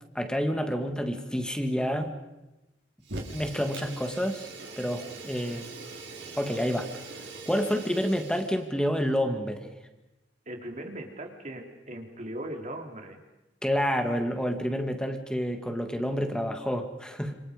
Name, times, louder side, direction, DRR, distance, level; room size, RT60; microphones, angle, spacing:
voice 1, 0.1-2.1 3.3-4.5 4.8-5.7 6.4-6.9 7.5-9.7 13.6-17.3, equal, 5° left, 5 dB, 2.4 m, -29 dB
Fire, 3.0-8.6, right 3 dB, 70° right, 5.3 m, -42 dB
voice 2, 10.5-13.2, right 1 dB, 40° right, 3 dB, 3.9 m, -39 dB
30.0 x 27.5 x 5.4 m, 1.0 s
head